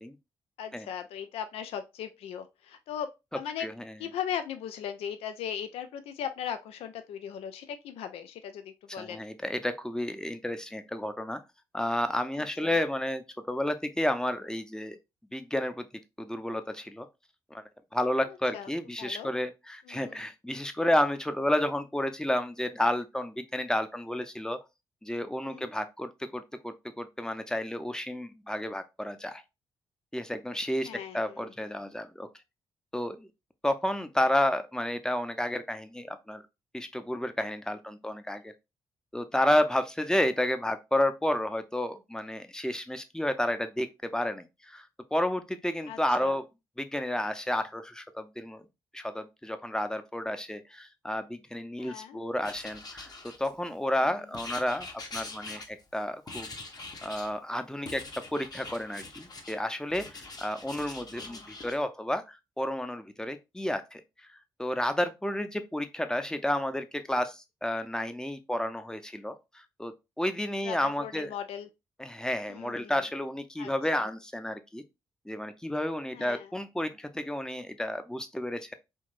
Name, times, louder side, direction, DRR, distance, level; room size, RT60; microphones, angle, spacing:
voice 1, 0.6-3.7 4.0-9.2 12.4-12.8 18.3-18.7 19.0-19.3 19.9-20.2 25.4-25.7 30.8-31.5 45.9-46.4 51.8-52.2 54.0-54.1 60.6-61.4 70.6-71.7 72.5-73.0 73.6-74.1 76.1-76.5, left 9 dB, 65° left, 0.4 m, -39 dB
voice 2, 3.6-3.9 9.0-11.4 11.7-15.0 15.3-15.9 16.2-17.1 17.5-17.6 17.9-24.6 25.0-29.4 30.1-30.9 31.1-32.3 32.9-33.3 33.6-36.4 36.7-38.5 39.1-43.9 44.1-46.4 46.8-48.6 48.9-53.1 53.4-56.5 57.0-58.0 58.3-64.0 64.6-69.9 70.2-71.3 72.0-74.8 75.3-78.7, left 1 dB, 5° left, 0.6 m, -31 dB
Writing, 52.4-53.7 54.3-56.0 56.3-57.3 57.9-59.6 59.9-61.8, left 3 dB, 35° left, 1.0 m, -43 dB
3.6 x 2.7 x 2.5 m
hypercardioid pair, 40°, 11 cm